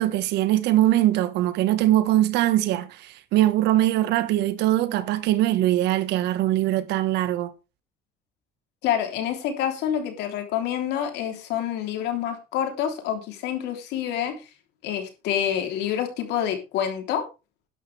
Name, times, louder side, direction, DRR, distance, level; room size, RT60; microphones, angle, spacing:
voice 1, 0.0-7.5, right 14 dB, 85° right, 1.4 m, -22 dB
voice 2, 8.8-14.4 14.8-17.3, left 9 dB, 85° left, 3.3 m, -27 dB
12.0 x 11.0 x 3.4 m
cardioid pair, 110°, 17 cm